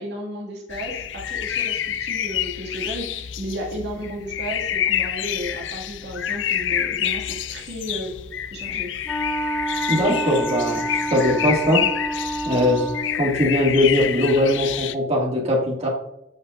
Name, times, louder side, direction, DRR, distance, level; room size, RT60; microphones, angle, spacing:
voice 1, 0.0-8.1 8.5-8.9, equal, 65° right, -2 dB, 2.2 m, -33 dB
sound 1, 0.7-15.0, left 10 dB, 80° left, 0.5 m, -28 dB
Wind instrument woodwind instrument, 9.0-13.3, right 1 dB, 5° left, 1.1 m, -28 dB
voice 2, 9.9-11.8 12.5-12.8 13.1-15.9, left 1 dB, 35° right, -4 dB, 2.2 m, -20 dB
15.5 x 5.4 x 2.6 m, 0.84 s
head